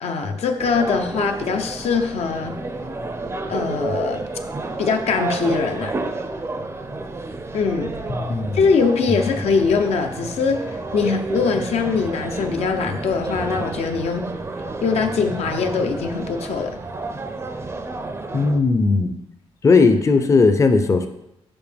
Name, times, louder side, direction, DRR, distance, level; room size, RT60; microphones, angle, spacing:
voice 1, 0.0-2.6 3.5-4.2 4.8-6.0 7.5-7.9 8.5-14.3 14.8-16.8, left 5 dB, 80° left, 5 dB, 0.7 m, -22 dB
sound 1, 0.6-18.6, right 3 dB, 25° right, 0.5 m, -30 dB
voice 2, 8.3-8.6 18.3-19.1 19.6-21.1, left 4 dB, 30° left, 7 dB, 0.5 m, -17 dB
7.0 x 5.3 x 3.4 m, 0.86 s
cardioid pair, 110°, 11 cm